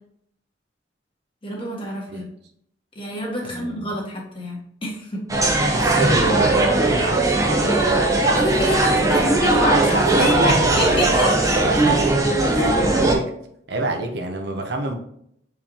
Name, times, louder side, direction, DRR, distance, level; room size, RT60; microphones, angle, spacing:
voice 1, 1.4-2.3 3.0-5.2 8.4-11.6 12.4-12.7, left 1 dB, 30° left, -2 dB, 1.8 m, -26 dB
voice 2, 3.4-3.9 5.7-7.2 10.2-11.1 11.5-12.6 12.9-13.2 13.7-14.9, right 2 dB, 65° right, 3 dB, 1.0 m, -26 dB
sound 1, 5.3-13.1, right 2 dB, 20° right, 1.0 m, -19 dB
7.1 x 4.8 x 2.9 m, 0.70 s
head